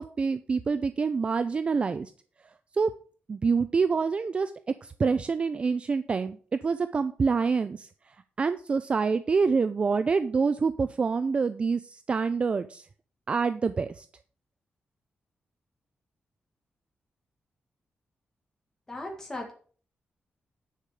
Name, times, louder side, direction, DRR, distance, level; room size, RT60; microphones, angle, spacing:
voice 1, 0.0-2.1 2.8-2.9 3.3-4.5 4.8-6.4 6.6-7.9 8.4-12.8 13.3-14.1, right 5 dB, 30° right, 11 dB, 0.4 m, -26 dB
voice 2, 18.9-19.5, left 1 dB, 15° left, 1 dB, 1.8 m, -37 dB
10.0 x 4.9 x 7.0 m, 0.44 s
wide cardioid pair, 180°, 4 cm